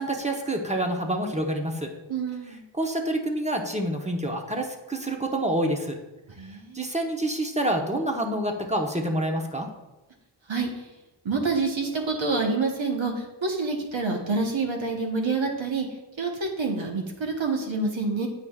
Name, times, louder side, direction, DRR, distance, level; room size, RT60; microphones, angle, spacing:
voice 1, 0.0-1.9 2.7-6.0 6.7-9.7, right 1 dB, 15° right, 2 dB, 0.8 m, -27 dB
voice 2, 2.1-2.6 6.4-6.8 10.5-10.8 11.2-15.9 16.2-18.3, right 3 dB, 75° right, 2 dB, 1.2 m, -27 dB
8.7 x 4.9 x 2.4 m, 1.1 s
wide cardioid pair, 45°, 47 cm